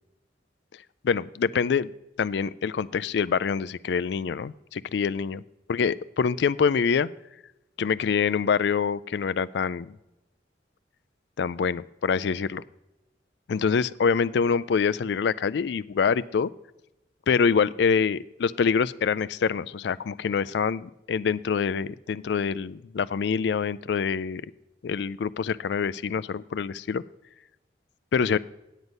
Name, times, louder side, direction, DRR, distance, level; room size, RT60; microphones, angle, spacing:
voice 1, 1.0-1.9 2.2-5.4 5.7-7.1 7.8-9.9 11.4-12.6 13.5-16.5 17.3-24.4 24.8-27.0 28.1-28.4, left 6 dB, 70° left, 17 dB, 0.4 m, -25 dB
9.2 x 8.1 x 5.3 m, 0.93 s
head